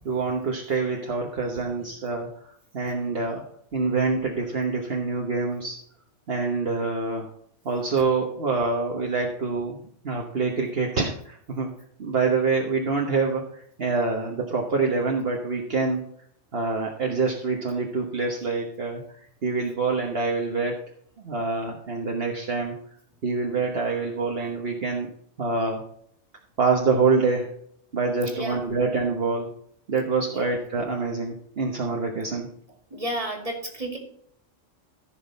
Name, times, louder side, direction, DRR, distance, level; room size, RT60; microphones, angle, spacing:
voice 1, 0.0-2.3 2.7-3.4 3.7-5.8 6.3-7.3 7.6-11.7 12.0-16.0 16.5-19.0 19.4-20.8 21.2-22.8 23.2-25.1 25.4-25.9 26.6-27.5 27.9-29.5 29.9-32.5, right 4 dB, 55° right, 0 dB, 1.4 m, -26 dB
voice 2, 28.2-28.6 30.2-30.4 32.9-34.0, right 1 dB, 30° right, 2 dB, 2.3 m, -32 dB
14.5 x 6.2 x 4.0 m, 0.67 s
omnidirectional pair, 1.2 m